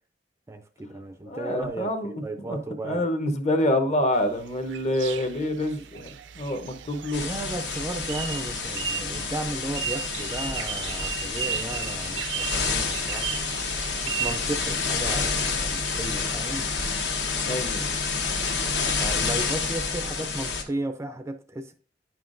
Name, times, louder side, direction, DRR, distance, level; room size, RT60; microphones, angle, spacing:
voice 1, 0.5-3.0 7.2-13.4 14.1-16.7 19.0-21.7, right 1 dB, 15° right, 0.4 m, -34 dB
voice 2, 1.3-2.6 2.8-7.2 17.4-17.9, left 1 dB, 40° left, 0.9 m, -27 dB
sound 1, 4.1-16.6, right 9 dB, 85° right, 0.5 m, -36 dB
sound 2, 7.1-20.6, left 4 dB, 70° left, 1.2 m, -29 dB
9.7 x 5.7 x 2.5 m
head